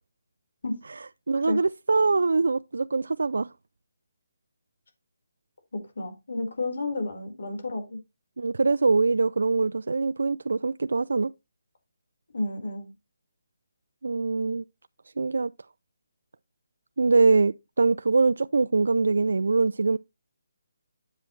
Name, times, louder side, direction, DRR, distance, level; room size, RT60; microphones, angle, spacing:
voice 1, 1.3-3.5 8.4-11.3 14.0-14.6 15.2-15.5 17.0-20.0, right 3 dB, 80° right, 0.4 m, -23 dB
voice 2, 5.7-8.0 12.3-12.9, left 2 dB, 70° left, 4.6 m, -31 dB
10.0 x 7.5 x 3.2 m
hypercardioid pair, 165°, 0 cm